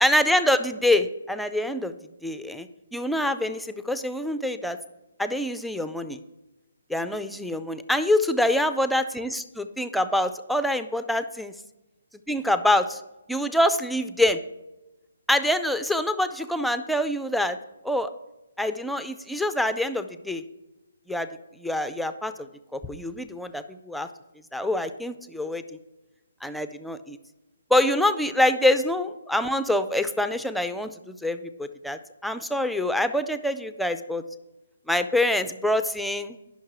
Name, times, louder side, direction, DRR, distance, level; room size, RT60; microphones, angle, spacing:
voice 1, 0.0-1.9 2.2-4.8 5.2-6.2 6.9-11.5 12.3-13.0 13.3-14.4 15.3-17.6 17.8-18.1 18.6-20.4 21.1-21.3 21.6-24.1 24.5-25.6 26.4-27.2 27.7-34.2 34.9-36.4, left 1 dB, ahead, 10 dB, 0.4 m, -25 dB
10.0 x 5.9 x 4.8 m, 0.99 s
figure-of-eight pair, 140°, 0 cm